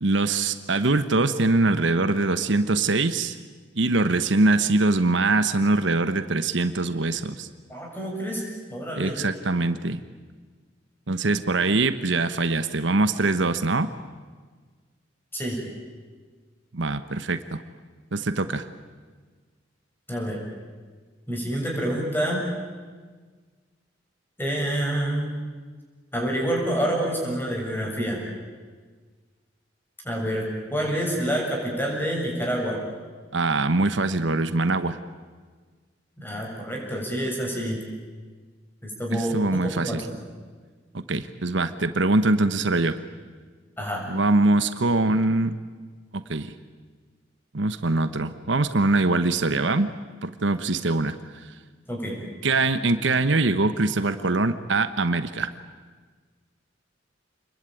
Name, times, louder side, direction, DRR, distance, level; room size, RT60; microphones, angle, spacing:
voice 1, 0.0-3.3 3.7-7.5 9.0-10.0 11.1-13.9 16.7-17.6 18.1-18.6 33.3-35.0 39.1-40.0 40.9-43.0 44.1-45.5 46.1-46.5 47.5-49.9 50.2-51.2 52.4-55.5, right 2 dB, 70° right, 11 dB, 1.1 m, -23 dB
voice 2, 7.7-9.2 15.3-15.6 20.1-20.4 21.3-22.4 24.4-25.3 26.1-28.2 30.0-30.4 30.7-32.8 36.2-37.8 38.8-40.2 43.8-44.0 51.9-52.2, equal, 10° left, -1 dB, 7.3 m, -27 dB
28.0 x 21.5 x 9.3 m, 1.5 s
head